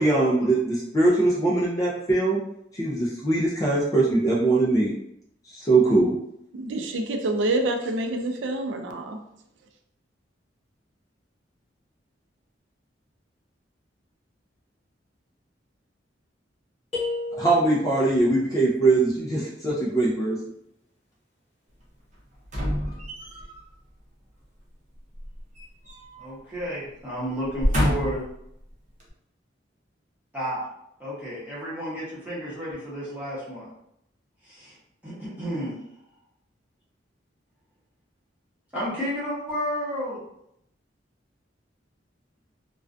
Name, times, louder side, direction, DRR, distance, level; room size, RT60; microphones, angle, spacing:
voice 1, 0.0-2.4 2.7-4.9 5.5-6.2 17.4-20.4, right 2 dB, 20° left, -4 dB, 0.4 m, -21 dB
voice 2, 6.5-9.2, right 2 dB, 80° right, 5 dB, 0.4 m, -27 dB
sound 1, 16.9-18.1, left 3 dB, 35° left, 0.9 m, -32 dB
sound 2, 22.4-23.6 25.2-26.3 26.6-26.8 27.4-28.3 29.0-29.1, equal, 40° right, 0.6 m, -27 dB
voice 3, 26.2-28.2 30.3-30.6 31.0-33.7 34.4-34.8 35.0-35.7 38.7-40.2, equal, 10° right, -9 dB, 0.8 m, -32 dB
2.4 x 2.2 x 2.4 m, 0.76 s
head